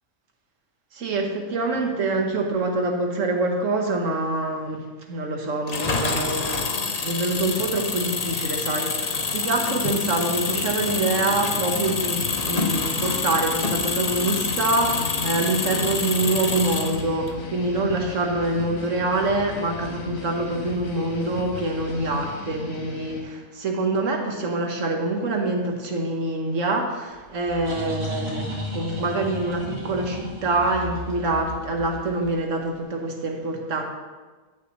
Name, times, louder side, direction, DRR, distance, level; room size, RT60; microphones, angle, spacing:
voice 1, 0.9-33.8, right 2 dB, 70° right, 2 dB, 1.6 m, -25 dB
Engine, 5.7-17.3, left 4 dB, 40° left, 0.6 m, -27 dB
sound 1, 9.5-23.2, left 4 dB, 85° left, 1.6 m, -36 dB
sound 2, 27.1-32.7, equal, 35° right, 2.3 m, -34 dB
15.5 x 6.1 x 3.1 m, 1.3 s
omnidirectional pair, 1.4 m